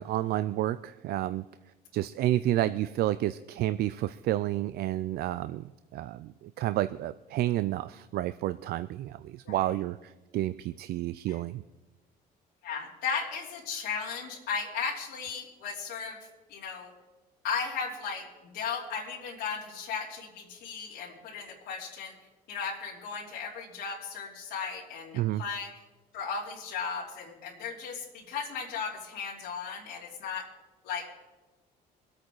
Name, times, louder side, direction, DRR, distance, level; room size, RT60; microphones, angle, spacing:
voice 1, 0.0-1.5 1.9-5.6 5.9-11.6 25.1-25.4, right 14 dB, 70° right, 14 dB, 0.4 m, -30 dB
voice 2, 12.6-16.2 16.5-16.9 17.4-18.3 18.5-22.1 22.5-25.7 26.1-30.5 30.8-31.1, left 6 dB, 85° left, -5 dB, 3.1 m, -36 dB
22.0 x 8.6 x 4.7 m, 1.1 s
cardioid pair, 110°, 17 cm